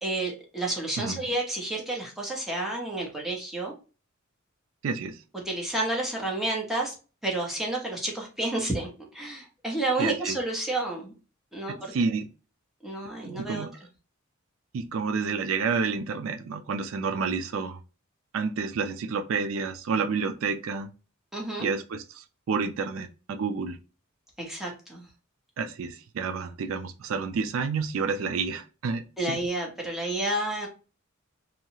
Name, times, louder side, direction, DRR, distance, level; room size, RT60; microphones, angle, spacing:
voice 1, 0.0-3.7 5.3-6.9 7.2-11.1 11.5-11.9 12.8-13.6 21.3-21.7 24.4-25.1 29.2-30.7, right 2 dB, ahead, -2 dB, 0.9 m, -30 dB
voice 2, 4.8-5.2 10.0-10.4 11.7-12.3 13.2-13.8 14.7-17.8 18.3-20.9 21.6-23.8 25.6-29.4, right 5 dB, 75° right, 7 dB, 0.4 m, -30 dB
2.8 x 2.3 x 2.9 m, 0.33 s
head